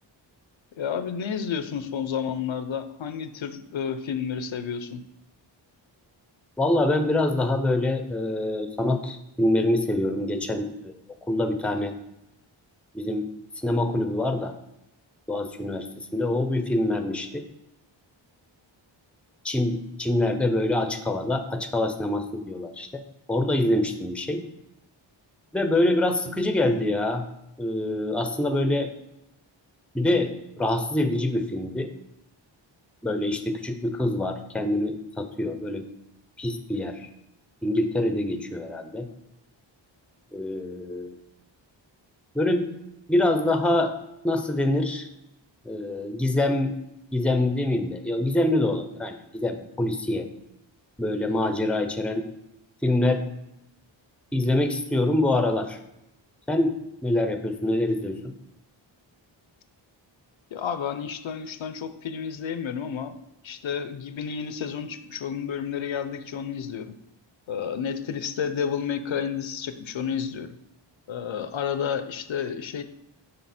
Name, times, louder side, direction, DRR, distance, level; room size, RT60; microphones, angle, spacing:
voice 1, 0.8-5.0 60.5-63.2 63.4-67.0 67.5-70.5 71.1-72.8, left 7 dB, 75° left, 11 dB, 0.7 m, -31 dB
voice 2, 6.6-10.9 11.3-11.9 12.9-13.3 13.6-14.5 15.3-17.4 19.4-23.0 23.3-24.4 25.5-27.2 27.6-28.9 29.9-30.3 30.6-31.9 33.0-35.8 36.4-37.1 37.6-39.1 40.3-41.1 42.3-42.7 43.1-43.9 44.2-45.1 45.6-46.7 47.1-50.3 51.0-52.3 52.8-53.2 54.3-55.8 56.5-56.7 57.0-58.2, left 1 dB, 5° left, 8 dB, 0.6 m, -25 dB
7.7 x 5.5 x 4.2 m, 0.85 s
wide cardioid pair, 130°, 47 cm